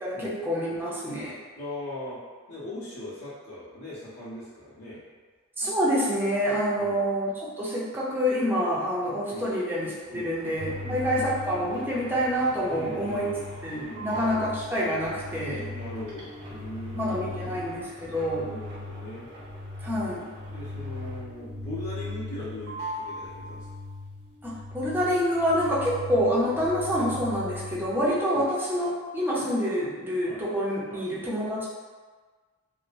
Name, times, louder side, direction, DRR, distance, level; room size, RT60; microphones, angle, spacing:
voice 1, 0.0-1.3 5.6-13.2 13.6-15.7 16.9-18.6 19.8-20.3 24.4-31.7, equal, 10° right, -7 dB, 0.5 m, -27 dB
voice 2, 1.5-2.2 2.5-5.0 6.8-7.0 9.3-9.5 10.1-10.3 10.8-11.3 12.7-13.5 13.8-14.5 15.7-17.7 18.4-19.3 19.6-19.7 20.5-23.7 28.3-28.5 30.2-30.4 30.9-31.1, left 1 dB, 70° left, -10 dB, 1.2 m, -40 dB
sound 1, 10.0-21.5 21.8-22.4 22.7-24.0, equal, 50° right, 0.7 m, -43 dB
sound 2, 10.6-28.1, left 3 dB, 50° left, 1.3 m, -40 dB
3.0 x 2.0 x 2.6 m, 1.4 s
head